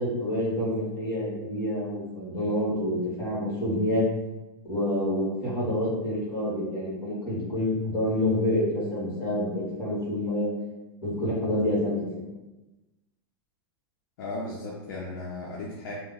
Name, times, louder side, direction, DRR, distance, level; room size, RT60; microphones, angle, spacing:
voice 1, 0.0-4.1 4.6-10.5 11.0-12.3, left 1 dB, 25° left, -6 dB, 1.3 m, -27 dB
voice 2, 14.2-15.9, left 2 dB, 55° left, -3 dB, 0.5 m, -36 dB
2.8 x 2.0 x 3.8 m, 1.1 s
supercardioid pair, 175°, 13 cm